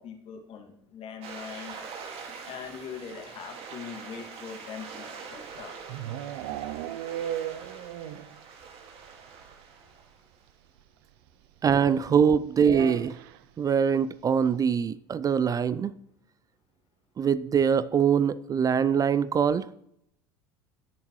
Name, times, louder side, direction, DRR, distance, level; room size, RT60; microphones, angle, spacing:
voice 1, 0.0-1.7 2.5-5.7, left 7 dB, 50° left, 3 dB, 2.2 m, -41 dB
sound 1, 1.2-10.4, right 5 dB, 50° right, 2.0 m, -44 dB
sound 2, 5.3-8.4 8.7-8.8 9.1-9.2 9.4-9.5 10.8-10.9 12.6-13.4, right 11 dB, 65° right, 0.6 m, -35 dB
voice 2, 11.6-13.2 13.6-15.9 17.2-19.7, right 7 dB, 30° right, 17 dB, 0.4 m, -23 dB
18.0 x 7.2 x 3.1 m, 0.76 s
hypercardioid pair, 70°, 13 cm